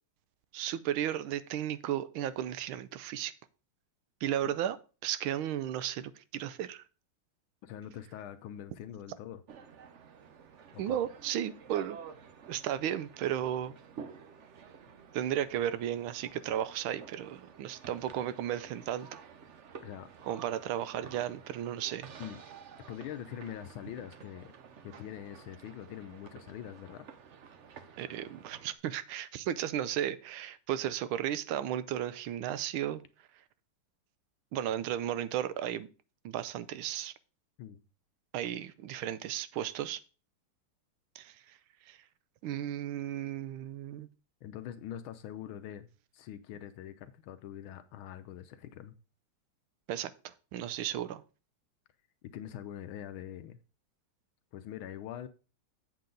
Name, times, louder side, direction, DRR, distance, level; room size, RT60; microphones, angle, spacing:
voice 1, 0.5-3.3 4.2-4.8 5.0-6.8 10.8-12.0 12.5-13.7 15.1-19.1 20.2-22.1 28.0-33.0 34.5-35.9 36.2-37.1 38.3-40.0 41.2-41.3 41.9-42.0 42.4-44.1 49.9-51.2, right 11 dB, 90° right, 1.5 m, -34 dB
voice 2, 7.6-9.4 10.7-11.0 19.8-20.1 22.2-22.4 22.9-24.5 24.8-27.1 37.6-37.8 44.4-45.9 46.1-48.9 52.2-53.6 54.5-55.3, left 10 dB, 80° left, 1.4 m, -43 dB
sound 1, 9.5-28.7, right 6 dB, 70° right, 0.7 m, -51 dB
7.6 x 7.4 x 3.9 m
omnidirectional pair, 2.3 m